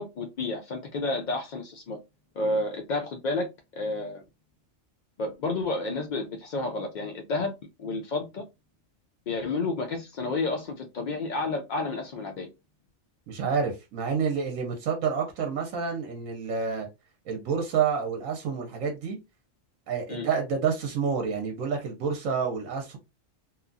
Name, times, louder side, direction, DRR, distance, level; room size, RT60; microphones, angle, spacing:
voice 1, 0.0-2.0 2.4-3.5 3.7-4.2 5.2-7.5 7.8-8.4 9.3-12.5 20.1-20.3, left 2 dB, 75° left, 0.4 m, -30 dB
voice 2, 13.3-16.9 17.3-19.2 19.9-23.0, right 6 dB, 85° right, 1.1 m, -28 dB
2.8 x 2.3 x 2.5 m
omnidirectional pair, 1.3 m